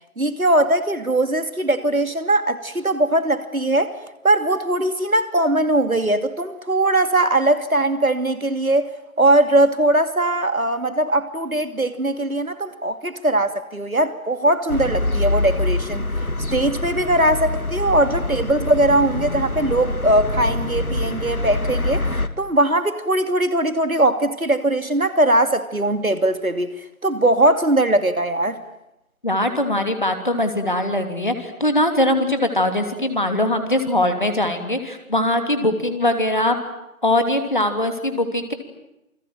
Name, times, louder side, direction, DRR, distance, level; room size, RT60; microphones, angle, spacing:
voice 1, 0.2-3.9 4.2-8.9 9.2-16.1 16.5-22.1 22.4-26.7 27.0-28.6, right 1 dB, 75° right, 2.8 m, -20 dB
sound 1, 14.7-22.3, left 2 dB, 85° left, 2.5 m, -25 dB
voice 2, 29.2-36.6 37.0-38.5, left 1 dB, 35° left, 3.1 m, -21 dB
28.5 x 22.5 x 9.3 m
figure-of-eight pair, 175°, 42 cm